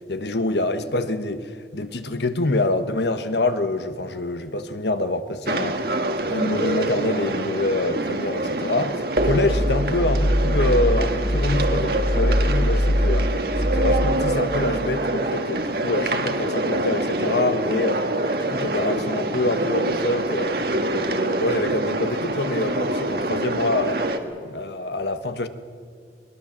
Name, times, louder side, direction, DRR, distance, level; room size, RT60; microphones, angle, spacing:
voice 1, 0.1-5.9 6.2-13.3 13.6-20.6 20.9-24.0 24.4-25.5, left 2 dB, 75° left, 1.2 m, -26 dB
sound 1, 5.5-24.2, right 2 dB, 60° right, 1.6 m, -25 dB
sound 2, 9.2-14.1, equal, 25° left, 1.8 m, -22 dB
21.5 x 21.5 x 7.4 m
head